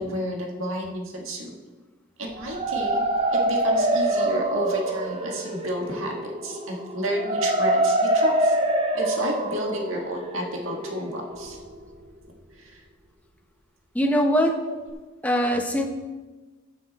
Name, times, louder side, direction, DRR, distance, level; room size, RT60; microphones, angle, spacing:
voice 1, 0.0-1.6 2.2-3.0 3.3-8.6 8.9-11.6 12.6-12.7 14.6-15.0 15.8-15.9, equal, 85° right, 1 dB, 1.9 m, -31 dB
sound 1, 2.3-12.2, right 1 dB, 30° right, 0.9 m, -25 dB
voice 2, 13.9-14.6 15.2-15.9, equal, 10° left, 2 dB, 1.0 m, -22 dB
16.0 x 6.1 x 4.2 m, 1.2 s
head